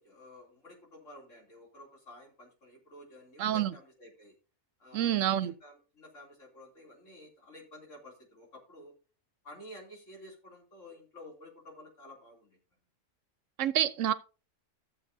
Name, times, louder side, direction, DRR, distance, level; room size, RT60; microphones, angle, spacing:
voice 1, 0.0-4.3 4.8-8.9 9.4-12.6, left 1 dB, 70° left, 3.4 m, -52 dB
voice 2, 3.4-3.7 4.9-5.5 13.6-14.1, right 11 dB, 75° right, 0.9 m, -27 dB
14.5 x 7.4 x 2.7 m
omnidirectional pair, 1.4 m